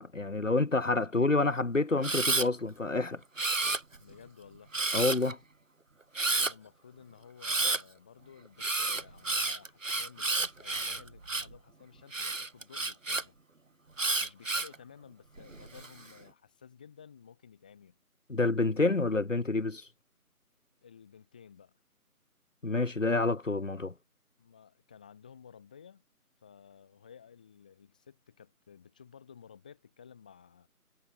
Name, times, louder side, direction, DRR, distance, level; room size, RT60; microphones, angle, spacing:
voice 1, 0.0-3.2 4.9-5.4 18.3-19.8 22.6-23.9, left 3 dB, 55° left, 2.5 m, -28 dB
Camera, 2.0-2.5 3.4-4.1 4.7-5.3 6.2-6.5 7.4-7.8 8.6-11.6 12.1-13.2 14.0-14.8 15.4-15.9, right 3 dB, 55° right, 2.6 m, -30 dB
voice 2, 4.0-4.7 6.2-13.4 14.2-18.0 20.8-21.8 24.4-26.0 26.4-30.7, left 7 dB, 5° left, 2.4 m, -54 dB
figure-of-eight pair, 175°, 45 cm